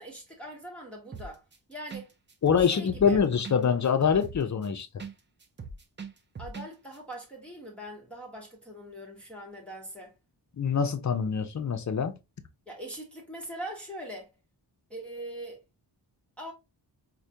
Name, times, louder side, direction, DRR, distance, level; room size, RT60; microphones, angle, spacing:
voice 1, 0.0-1.4 1.7-2.1 2.6-3.2 6.4-10.1 12.7-14.3 14.9-15.6 16.4-16.5, right 1 dB, 5° left, 1.0 m, -42 dB
sound 1, 1.1-1.6 1.9-2.0 2.3-5.1 5.4-6.7 6.9-7.0, right 4 dB, 25° right, 0.5 m, -41 dB
voice 2, 2.4-4.9 10.6-12.1, left 6 dB, 45° left, 0.5 m, -25 dB
4.7 x 2.2 x 2.7 m
wide cardioid pair, 115°, 43 cm